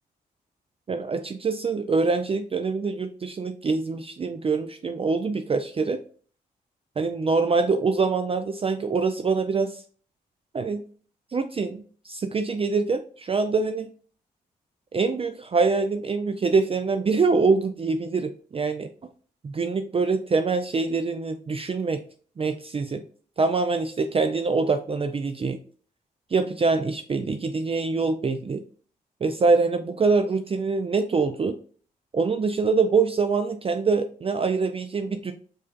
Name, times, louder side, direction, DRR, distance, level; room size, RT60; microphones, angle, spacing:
voice 1, 0.9-6.0 7.0-9.8 10.5-10.8 11.3-13.9 14.9-18.9 19.4-22.0 22.4-23.0 23.4-25.6 26.3-28.6 29.2-31.6 32.1-35.3, right 4 dB, 30° right, 8 dB, 0.4 m, -24 dB
4.8 x 2.6 x 2.3 m, 0.43 s
hypercardioid pair, 40°, 18 cm